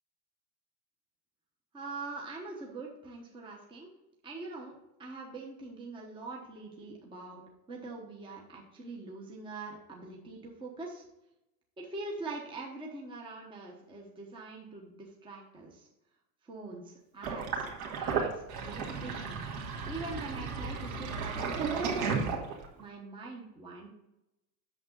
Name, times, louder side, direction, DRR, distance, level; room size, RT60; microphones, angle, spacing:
voice 1, 1.7-3.9 4.2-7.4 7.7-11.0 11.8-15.9 16.4-17.6 18.0-19.4 19.9-22.2 22.8-23.9, right 3 dB, 10° right, -2 dB, 1.1 m, -43 dB
Sink (filling or washing), 17.2-22.8, right 5 dB, 55° right, 2.2 m, -34 dB
8.7 x 6.9 x 3.9 m, 0.89 s
supercardioid pair, 170°, 49 cm